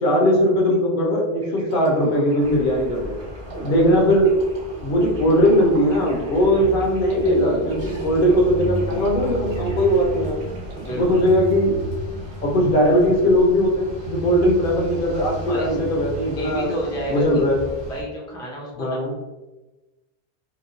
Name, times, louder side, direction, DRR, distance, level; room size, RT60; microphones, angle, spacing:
voice 1, 0.0-3.2 3.6-4.3 4.8-10.4 11.0-11.7 12.4-16.7 17.1-17.6 18.8-19.1, equal, 60° left, -1 dB, 0.7 m, -19 dB
sound 1, 1.4-11.9, right 2 dB, 90° right, 1.0 m, -38 dB
sound 2, 2.4-18.0, right 2 dB, 30° right, 0.7 m, -34 dB
voice 2, 10.8-11.3 15.5-15.8 16.3-17.4 17.8-19.2, right 1 dB, 5° left, -3 dB, 0.3 m, -30 dB
2.8 x 2.1 x 2.4 m, 1.1 s
omnidirectional pair, 1.1 m